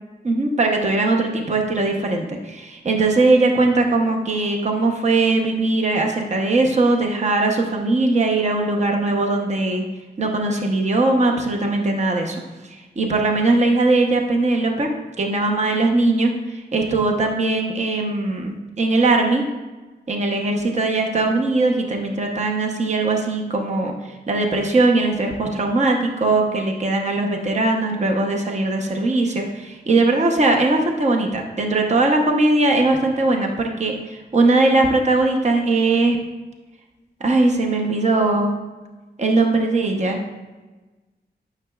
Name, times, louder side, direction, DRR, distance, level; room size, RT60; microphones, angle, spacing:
voice 1, 0.2-9.8 10.2-12.4 13.0-14.9 15.2-19.4 20.1-23.9 24.3-36.2 37.2-38.5 39.2-40.2, right 2 dB, 40° right, 2 dB, 0.9 m, -20 dB
9.7 x 6.1 x 2.4 m, 1.2 s
wide cardioid pair, 140°, 18 cm